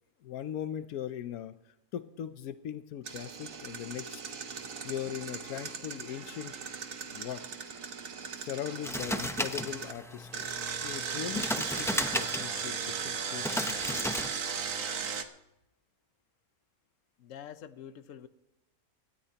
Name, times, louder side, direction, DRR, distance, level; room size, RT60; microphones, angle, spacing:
voice 1, 0.2-1.6 1.9-4.2 4.8-6.8 7.1-7.4 8.4-10.5 10.8-14.1, left 10 dB, 85° left, 1.2 m, -40 dB
Engine, 3.0-9.9 10.3-15.2, right 6 dB, 65° right, 1.4 m, -37 dB
sound 1, 8.8-15.2, equal, 5° left, 0.3 m, -35 dB
voice 2, 17.2-18.3, left 9 dB, 65° left, 1.1 m, -46 dB
25.5 x 13.0 x 2.9 m
omnidirectional pair, 1.5 m